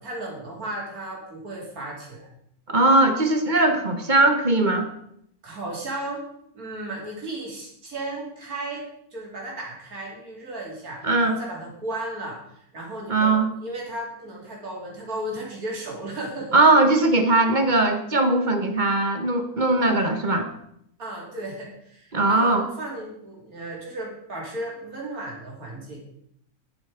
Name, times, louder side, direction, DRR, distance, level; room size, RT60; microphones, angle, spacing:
voice 1, 0.0-2.3 5.4-6.2 6.5-8.8 9.1-16.5 19.8-20.0 21.0-26.0, right 1 dB, 75° right, -2 dB, 3.8 m, -35 dB
voice 2, 2.7-4.9 11.0-11.4 13.1-13.5 16.5-20.5 22.1-22.6, right 2 dB, 35° right, 6 dB, 1.2 m, -20 dB
10.5 x 9.0 x 5.0 m, 0.73 s
omnidirectional pair, 1.6 m